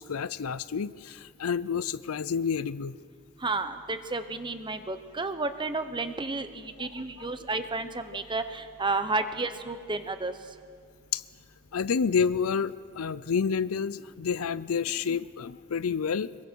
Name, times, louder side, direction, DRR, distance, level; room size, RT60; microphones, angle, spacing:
voice 1, 0.0-2.9 6.8-6.9 7.2-7.3 11.1-11.2 11.7-16.3, left 6 dB, 75° left, 17 dB, 0.5 m, -29 dB
voice 2, 3.4-10.3, right 3 dB, 20° right, 9 dB, 1.0 m, -31 dB
26.0 x 23.0 x 4.6 m, 2.2 s
head